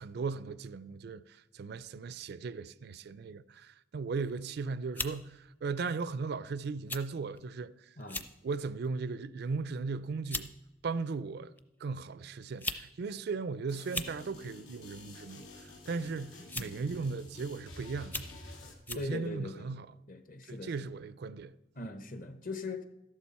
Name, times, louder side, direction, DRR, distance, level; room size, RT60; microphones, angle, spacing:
voice 1, 0.0-8.0 8.4-10.5 10.8-11.5 11.8-18.6 18.9-19.9 20.5-21.5, right 4 dB, 55° right, 0.4 m, -37 dB
sound 1, 4.3-4.5 4.9-5.2 6.0-6.2 6.9-7.0 7.4-7.5 8.0-8.3 8.8-9.1 9.9-10.0 10.3-10.5 11.6-11.7 12.4-12.9 13.1-13.2 13.8-14.2 15.4-15.7 16.5-16.8 17.4-17.5 18.0-18.4 18.9-19.1, left 2 dB, 10° left, 0.5 m, -38 dB
voice 2, 8.0-8.3 16.4-16.8 18.9-20.9 21.7-22.8, left 3 dB, 45° left, 1.0 m, -41 dB
sound 2, 13.7-18.7, left 2 dB, 85° left, 2.2 m, -50 dB
13.0 x 11.5 x 4.2 m
head